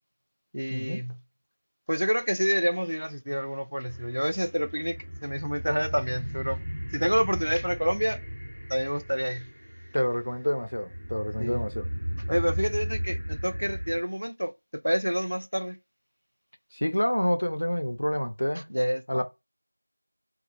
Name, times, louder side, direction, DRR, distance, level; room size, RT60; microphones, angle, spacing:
voice 1, 0.5-1.2 1.9-5.0 5.2-6.6 6.9-8.2 8.7-9.5 11.4-11.6 12.3-14.5 14.8-15.8 18.7-19.3, equal, 85° right, 0.3 m, -28 dB
sound 1, 3.9-14.0, equal, 50° right, 0.7 m, -36 dB
voice 2, 9.9-11.9 16.7-18.7 19.1-19.3, equal, 50° left, 0.3 m, -28 dB
2.1 x 2.1 x 2.7 m
figure-of-eight pair, 180°, 0 cm